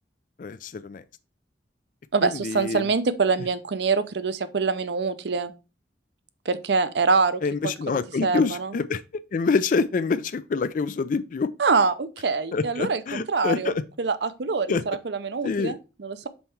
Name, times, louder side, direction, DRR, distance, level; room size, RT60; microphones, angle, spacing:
voice 1, 0.4-1.0 2.2-2.9 7.4-9.0 9.3-11.5 12.5-13.8 14.7-14.8 15.4-15.8, left 4 dB, 45° left, 0.4 m, -26 dB
voice 2, 2.1-5.5 6.5-7.4 7.9-8.7 11.6-13.7 14.0-16.3, right 4 dB, 65° right, 0.6 m, -25 dB
5.5 x 4.4 x 4.3 m
head